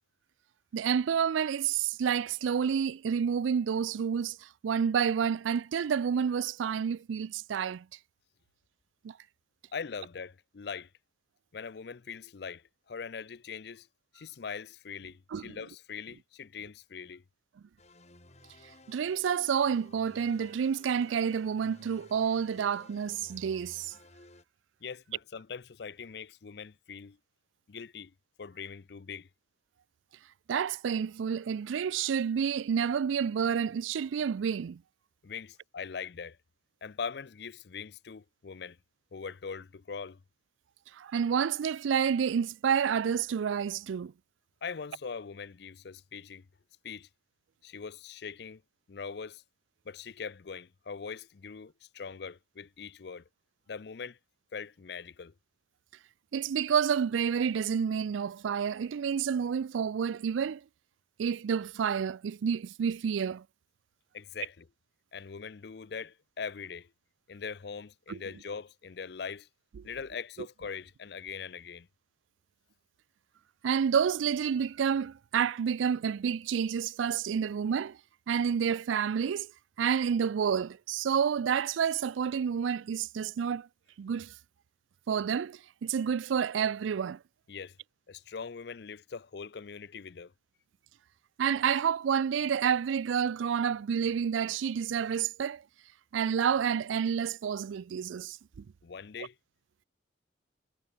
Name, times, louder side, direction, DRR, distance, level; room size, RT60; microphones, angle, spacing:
voice 1, 0.7-7.9 9.0-9.1 15.3-15.6 18.9-23.9 30.5-34.8 40.9-44.1 56.3-60.6 61.2-63.4 68.1-68.2 73.6-78.0 78.3-79.5 79.8-83.7 84.0-84.3 85.1-87.2 91.4-95.6 96.1-98.6, right 7 dB, 80° right, 0.4 m, -29 dB
voice 2, 9.7-10.9 11.5-13.9 14.1-17.2 24.8-27.2 27.7-28.1 28.4-29.3 35.2-36.4 36.8-38.8 39.1-40.2 44.6-46.5 46.8-47.1 47.6-48.6 48.9-49.4 49.9-53.2 53.7-54.2 54.5-55.3 64.1-64.7 65.1-66.9 67.3-69.5 69.8-71.9 87.5-87.8 88.1-90.3 98.8-99.4, left 6 dB, 55° left, 0.5 m, -41 dB
sound 1, 17.8-24.4, left 2 dB, 35° left, 2.5 m, -56 dB
head